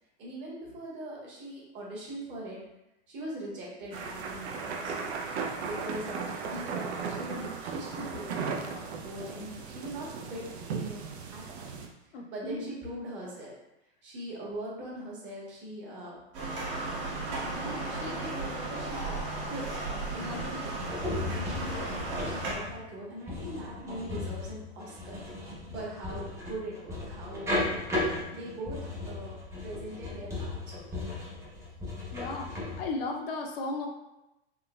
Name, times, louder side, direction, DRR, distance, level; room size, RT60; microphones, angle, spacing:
voice 1, 0.2-2.6 3.1-5.1 5.6-11.0 11.3-11.7 12.0-13.5 14.0-16.1 17.4-19.2 19.5-19.7 20.1-25.2 25.5-27.7 28.3-29.4 29.6-30.9, right 1 dB, 35° right, -5 dB, 1.2 m, -41 dB
sound 1, 3.9-11.9, right 5 dB, 70° right, 0.6 m, -36 dB
voice 2, 12.1-12.6 32.1-33.9, left 3 dB, 60° left, 2 dB, 0.6 m, -35 dB
sound 2, 16.3-22.5, right 2 dB, 55° right, 1.3 m, -35 dB
sound 3, 20.2-32.9, left 2 dB, 10° right, 0.5 m, -36 dB
3.7 x 2.8 x 2.3 m, 0.94 s
hypercardioid pair, 130°, 34 cm